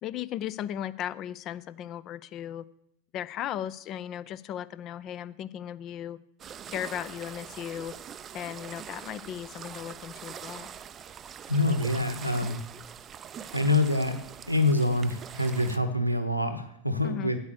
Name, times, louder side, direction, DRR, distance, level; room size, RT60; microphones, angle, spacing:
voice 1, 0.0-2.6 3.1-6.2 6.7-7.9 8.3-10.7 17.0-17.3, left 11 dB, 35° left, 18 dB, 0.4 m, -36 dB
sound 1, 6.4-15.8, right 8 dB, 25° right, 0.4 m, -43 dB
voice 2, 11.5-12.6 13.5-14.2 14.5-17.4, left 2 dB, 90° right, 11 dB, 1.1 m, -26 dB
9.4 x 8.1 x 6.7 m, 0.74 s
figure-of-eight pair, 90°, 0 cm